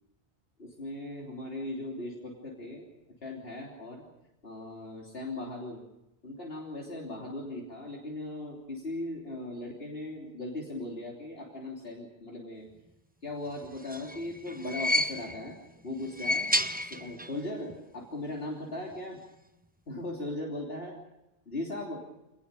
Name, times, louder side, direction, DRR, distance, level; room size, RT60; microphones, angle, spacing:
voice 1, 0.6-2.9 3.2-4.0 4.4-5.8 6.2-12.7 13.2-15.6 15.8-16.5 16.8-19.2 19.9-21.0 21.5-22.0, left 2 dB, 65° left, -2 dB, 3.6 m, -38 dB
sound 1, 13.6-15.5 16.0-17.4 17.7-17.8 18.9-19.0, left 1 dB, 10° right, 0.9 m, -31 dB
26.5 x 19.5 x 6.9 m, 0.92 s
omnidirectional pair, 1.1 m